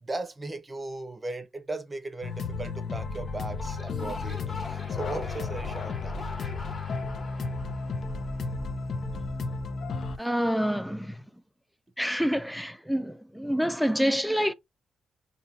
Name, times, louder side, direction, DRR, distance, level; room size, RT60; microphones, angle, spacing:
voice 1, 0.0-6.2, right 2 dB, 20° right, 0.7 m, -37 dB
sound 1, 2.2-10.2, left 4 dB, 60° left, 0.7 m, -33 dB
sound 2, 3.5-8.8, left 3 dB, 30° left, 1.3 m, -42 dB
voice 2, 10.2-11.2 12.0-14.5, equal, ahead, 0.4 m, -27 dB
5.6 x 2.8 x 2.8 m
cardioid pair, 100°, 0 cm